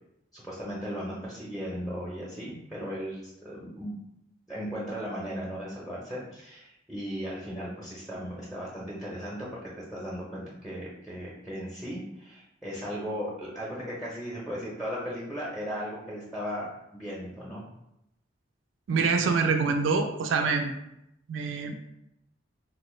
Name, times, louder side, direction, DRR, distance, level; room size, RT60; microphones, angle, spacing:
voice 1, 0.3-4.0 4.5-17.7, equal, ahead, -6 dB, 0.5 m, -36 dB
voice 2, 18.9-20.7 21.3-21.7, right 4 dB, 70° right, 5 dB, 0.3 m, -25 dB
3.6 x 2.0 x 3.0 m, 0.82 s
head